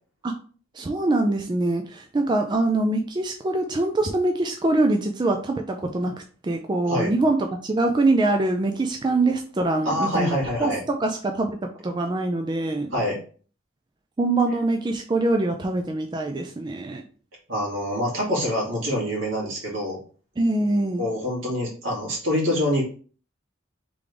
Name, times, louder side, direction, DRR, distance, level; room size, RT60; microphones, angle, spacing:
voice 1, 0.7-6.1 6.4-11.6 11.8-12.9 14.2-17.0 20.4-21.1, right 2 dB, 20° right, 4 dB, 0.3 m, -24 dB
voice 2, 9.8-10.8 12.9-13.2 17.5-20.0 21.0-22.8, equal, 75° right, -3 dB, 2.1 m, -25 dB
3.8 x 3.3 x 3.4 m, 0.41 s
head